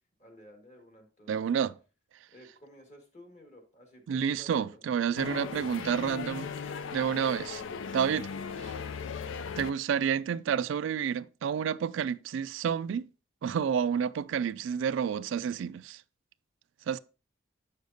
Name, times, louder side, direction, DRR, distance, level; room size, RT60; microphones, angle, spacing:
voice 1, 0.2-1.4 2.3-4.8, equal, 35° left, 1.7 m, -54 dB
voice 2, 1.3-1.8 4.1-6.5 6.9-7.6 7.9-8.3 8.6-8.7 9.6-13.1 13.4-16.0 16.9-17.0, right 7 dB, 75° right, 0.3 m, -29 dB
sound 1, 5.2-9.7, left 6 dB, 80° left, 0.4 m, -38 dB
7.1 x 6.5 x 2.7 m
head